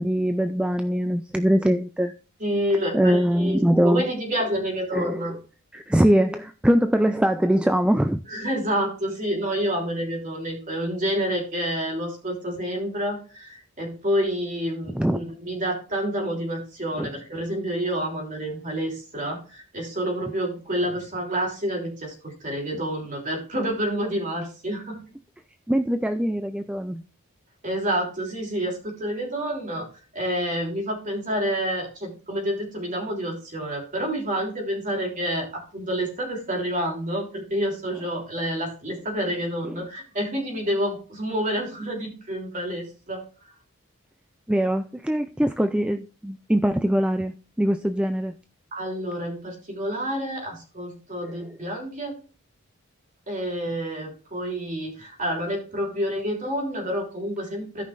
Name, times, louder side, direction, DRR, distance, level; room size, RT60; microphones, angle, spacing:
voice 1, 0.0-2.1 2.9-4.1 4.9-5.2 5.7-8.2 14.9-15.2 17.0-17.1 25.7-27.0 39.7-39.8 44.5-48.3, equal, 5° right, 0.3 m, -22 dB
voice 2, 2.4-5.3 8.3-25.0 27.6-29.8 30.1-43.2 48.7-52.1 53.3-57.8, equal, 35° right, 3.3 m, -28 dB
16.5 x 5.6 x 2.5 m
head